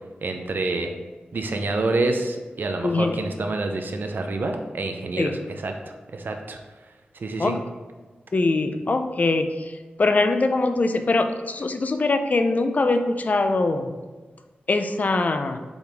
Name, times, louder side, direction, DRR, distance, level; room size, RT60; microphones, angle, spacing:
voice 1, 0.2-0.9 1.3-5.7 6.1-6.6 7.2-7.6, right 2 dB, 65° right, 4 dB, 0.6 m, -27 dB
voice 2, 2.8-3.2 5.2-5.4 7.4-7.6 8.3-9.7 10.0-13.9 14.7-15.6, left 3 dB, 45° left, 7 dB, 0.5 m, -22 dB
7.0 x 4.1 x 3.5 m, 1.3 s
wide cardioid pair, 80°, 4 cm